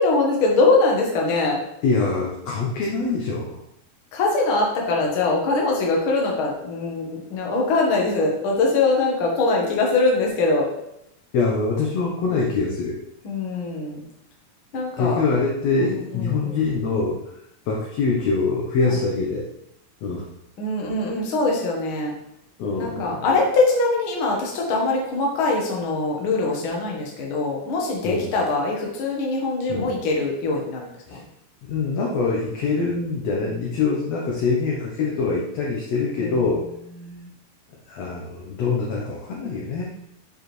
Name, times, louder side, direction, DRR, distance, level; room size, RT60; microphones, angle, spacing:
voice 1, 0.0-1.6 4.1-10.7 13.2-14.0 14.7-15.2 15.8-16.6 20.6-22.1 22.8-31.2 36.2-36.4 37.0-37.3, left 3 dB, 55° left, -1 dB, 1.6 m, -22 dB
voice 2, 1.8-3.6 11.3-13.0 15.0-17.2 17.7-19.5 20.0-20.3 22.6-23.4 28.0-28.3 29.7-29.9 31.1-31.2 31.6-36.6 37.9-39.8, left 4 dB, 70° left, -2 dB, 1.7 m, -24 dB
7.7 x 4.8 x 3.2 m, 0.78 s
omnidirectional pair, 3.8 m